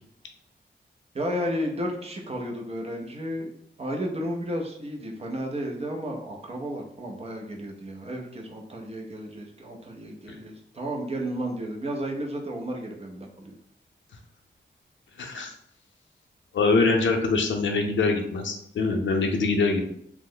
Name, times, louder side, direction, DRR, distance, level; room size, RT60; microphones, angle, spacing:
voice 1, 1.1-3.5 3.8-13.5, equal, 35° right, 0 dB, 0.5 m, -33 dB
voice 2, 15.2-15.5 16.5-19.9, left 3 dB, 80° left, 4 dB, 0.5 m, -24 dB
3.0 x 2.0 x 3.7 m, 0.72 s
wide cardioid pair, 130°, 19 cm